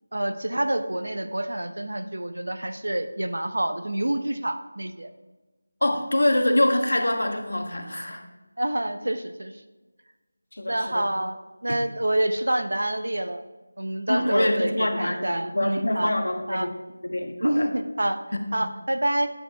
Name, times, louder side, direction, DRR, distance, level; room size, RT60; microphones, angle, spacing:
voice 1, 0.1-5.1 8.6-9.5 10.6-11.4 11.6-13.4 13.8-16.1 16.5-16.7 17.4-18.2 18.5-19.3, right 1 dB, 80° right, 9 dB, 0.8 m, -27 dB
voice 2, 5.8-8.2 10.5-11.1 11.7-11.8 14.1-16.7 17.0-17.7 18.3-18.4, left 1 dB, 80° left, 5 dB, 1.3 m, -25 dB
9.1 x 6.6 x 3.5 m, 1.2 s
figure-of-eight pair, 175°, 0 cm